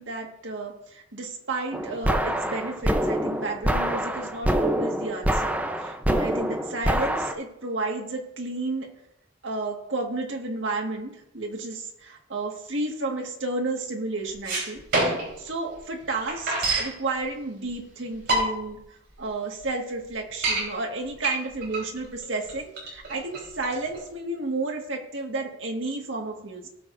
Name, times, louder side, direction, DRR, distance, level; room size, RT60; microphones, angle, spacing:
voice 1, 0.0-8.9 9.4-14.8 15.4-18.8 19.2-26.7, right 2 dB, 85° right, 1 dB, 1.8 m, -32 dB
sound 1, 1.7-7.3, right 1 dB, 10° right, 0.7 m, -25 dB
sound 2, 14.3-15.4 15.8-15.9 16.0-16.9 17.7-17.8 18.1-18.8 19.3-19.4 19.6-19.7 20.1-20.6 21.2-24.1, right 2 dB, 65° right, 4.0 m, -26 dB
18.5 x 6.6 x 2.6 m, 0.83 s
head